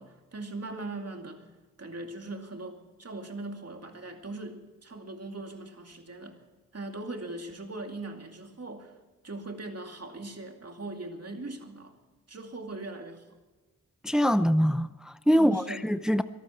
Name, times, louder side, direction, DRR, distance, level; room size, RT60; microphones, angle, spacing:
voice 1, 0.0-1.5 1.8-6.4 6.7-9.0 9.2-11.9 12.3-13.3 15.3-15.8, right 2 dB, 45° right, 2.5 m, -40 dB
voice 2, 14.0-16.2, equal, ahead, 0.7 m, -24 dB
23.0 x 12.5 x 4.4 m
wide cardioid pair, 70°, 34 cm